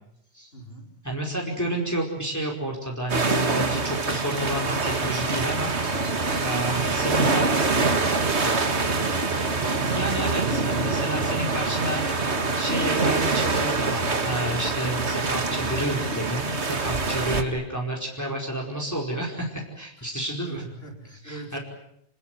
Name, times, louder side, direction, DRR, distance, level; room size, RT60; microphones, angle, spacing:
voice 1, 0.5-0.9 20.4-21.6, right 2 dB, 65° left, 2 dB, 5.3 m, -42 dB
voice 2, 1.0-5.7 6.4-7.5 9.9-12.0 12.6-20.6 21.2-21.6, right 1 dB, 15° left, -1 dB, 5.0 m, -30 dB
sound 1, 3.1-17.4, right 3 dB, 90° right, 2.3 m, -25 dB
28.5 x 20.5 x 9.3 m, 0.74 s
omnidirectional pair, 1.1 m